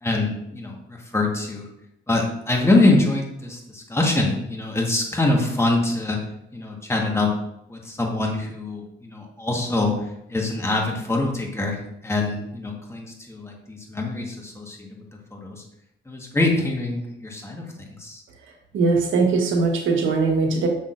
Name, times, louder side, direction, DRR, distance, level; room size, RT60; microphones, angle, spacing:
voice 1, 0.0-1.7 2.1-6.2 6.5-7.3 7.7-9.9 10.3-11.8 12.0-14.9 15.3-15.6 16.1-18.2, left 2 dB, 15° left, 0 dB, 1.4 m, -24 dB
voice 2, 18.7-20.7, right 4 dB, 80° right, 2 dB, 1.3 m, -20 dB
6.2 x 6.0 x 2.5 m, 0.81 s
cardioid pair, 90°, 20 cm